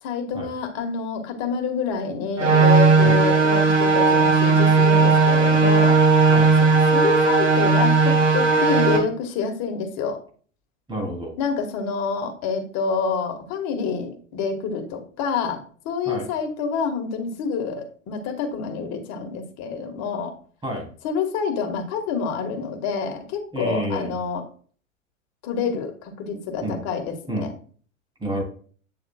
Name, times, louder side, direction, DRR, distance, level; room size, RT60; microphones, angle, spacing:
voice 1, 0.0-6.0 6.9-10.2 11.4-15.6 15.9-20.3 21.0-24.4 25.4-27.5, left 5 dB, 40° left, 5 dB, 1.9 m, -27 dB
sound 1, 2.4-9.0, right 4 dB, 65° right, 2.6 m, -16 dB
voice 2, 10.9-11.3 16.0-16.3 20.6-20.9 23.5-24.2 26.6-26.8 27.3-27.5 28.2-28.4, right 1 dB, 10° right, 1 dB, 3.3 m, -29 dB
8.8 x 6.9 x 2.4 m, 0.43 s
figure-of-eight pair, 95°, 39 cm